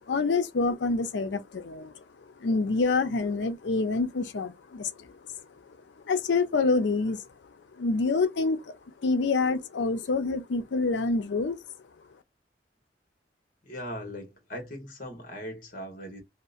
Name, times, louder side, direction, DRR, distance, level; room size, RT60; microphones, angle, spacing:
voice 1, 0.1-1.9 2.4-5.1 6.1-7.2 7.8-8.8 9.0-11.6, left 3 dB, 80° left, 0.5 m, -26 dB
voice 2, 13.6-16.2, equal, 50° left, 1.1 m, -39 dB
2.8 x 2.0 x 2.4 m
head